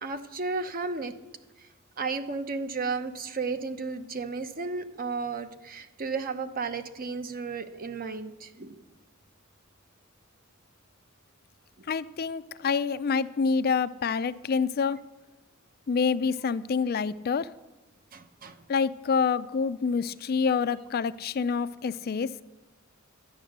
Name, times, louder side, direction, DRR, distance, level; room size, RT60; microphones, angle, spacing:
voice 1, 0.0-1.1 2.0-8.8 18.1-18.6, right 4 dB, 45° right, 9 dB, 0.9 m, -33 dB
voice 2, 11.9-15.0 15.9-17.5 18.7-22.3, left 5 dB, 50° left, 15 dB, 0.4 m, -27 dB
12.0 x 9.4 x 6.6 m, 1.1 s
head